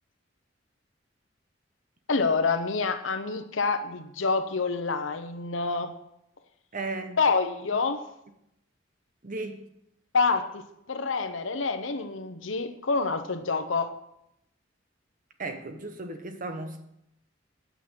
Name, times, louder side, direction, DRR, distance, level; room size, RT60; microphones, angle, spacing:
voice 1, 2.1-5.9 7.2-8.0 10.1-13.9, left 4 dB, 80° left, 8 dB, 1.0 m, -27 dB
voice 2, 6.7-7.2 9.2-9.7 15.4-16.8, right 2 dB, 45° right, 7 dB, 1.2 m, -35 dB
9.2 x 6.1 x 7.4 m, 0.78 s
head